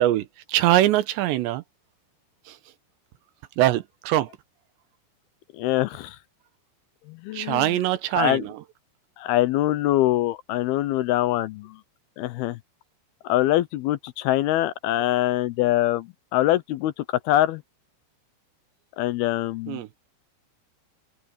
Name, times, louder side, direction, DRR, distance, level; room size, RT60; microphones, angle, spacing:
voice 1, 0.0-1.6 2.5-2.6 3.6-4.3 7.3-8.6 19.7-19.9, right 14 dB, 80° right, 3.1 m, -23 dB
voice 2, 5.6-6.2 7.1-7.8 8.1-8.4 9.2-11.8 12.2-12.6 13.2-17.6 19.0-19.8, left 14 dB, 80° left, 2.3 m, -24 dB
omnidirectional pair, 5.1 m